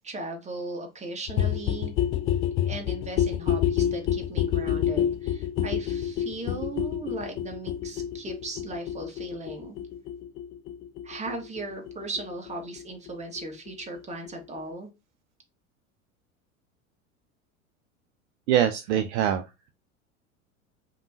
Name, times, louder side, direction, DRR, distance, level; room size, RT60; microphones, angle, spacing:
voice 1, 0.0-1.9 2.7-9.8 11.0-14.9, right 2 dB, 15° right, 3 dB, 1.4 m, -37 dB
sound 1, 1.3-12.8 13.1-13.2 13.4-13.5 13.7-13.8 14.0-14.1 14.3-14.4 14.6-14.7, left 10 dB, 30° left, 0.5 m, -28 dB
voice 2, 18.5-19.4, right 10 dB, 55° right, 7 dB, 0.6 m, -23 dB
5.2 x 3.0 x 2.5 m, 0.26 s
figure-of-eight pair, 80°, 42 cm